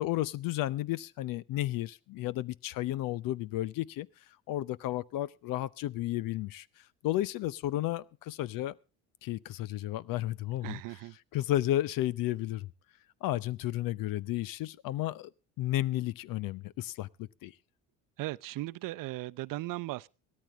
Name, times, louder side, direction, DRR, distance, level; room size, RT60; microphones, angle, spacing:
voice 1, 0.0-4.1 4.5-6.6 7.0-8.7 9.2-10.8 11.3-12.7 13.2-15.3 15.6-17.1 17.4-17.5, left 14 dB, 65° left, 0.8 m, -32 dB
voice 2, 10.6-11.2 18.2-20.1, right 18 dB, 65° right, 0.7 m, -37 dB
17.0 x 13.0 x 3.5 m
supercardioid pair, 80°, 36 cm